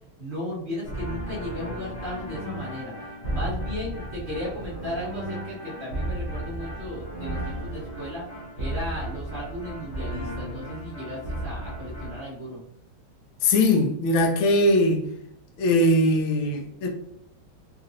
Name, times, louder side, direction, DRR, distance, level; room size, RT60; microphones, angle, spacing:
voice 1, 0.2-8.2 8.6-12.6, left 1 dB, 40° right, 0.7 m, -35 dB
sound 1, 0.8-12.2, right 1 dB, 50° left, 0.8 m, -34 dB
voice 2, 13.4-15.0 15.6-16.9, left 1 dB, 75° left, 1.4 m, -20 dB
4.0 x 2.5 x 2.6 m
omnidirectional pair, 2.4 m